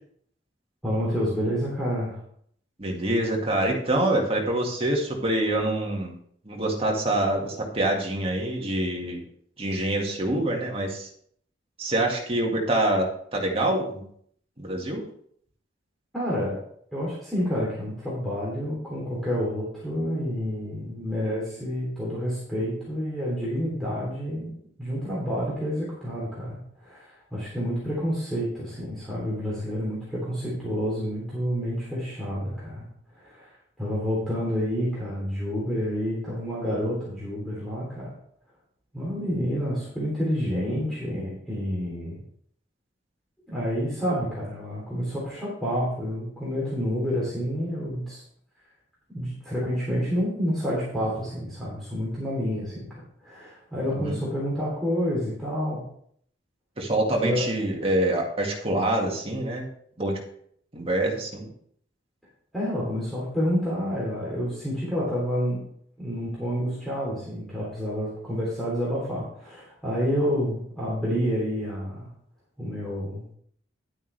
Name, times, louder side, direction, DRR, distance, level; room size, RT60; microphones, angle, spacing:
voice 1, 0.8-2.2 16.1-16.6 16.9-24.5 24.8-32.9 33.2-33.5 33.8-38.1 38.9-42.2 43.5-48.2 49.1-55.8 57.2-57.4 62.5-65.6 66.0-72.1 72.6-73.4, equal, ahead, -8 dB, 3.2 m, -29 dB
voice 2, 2.8-6.1 6.5-9.2 9.6-11.1 11.8-14.1 14.6-15.1 53.9-54.2 56.8-59.7 60.0-60.2 60.7-61.5, right 1 dB, 30° right, 0 dB, 2.0 m, -26 dB
11.0 x 8.5 x 3.4 m, 0.65 s
head